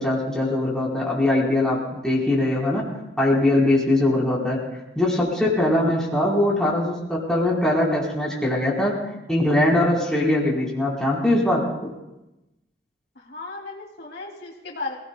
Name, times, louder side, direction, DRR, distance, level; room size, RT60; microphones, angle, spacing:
voice 1, 0.0-2.8 3.2-4.6 5.0-9.0 9.3-11.6, left 1 dB, 5° left, -6 dB, 3.9 m, -21 dB
voice 2, 13.1-15.0, left 3 dB, 75° left, -1 dB, 2.7 m, -35 dB
27.0 x 17.5 x 2.2 m, 0.95 s
head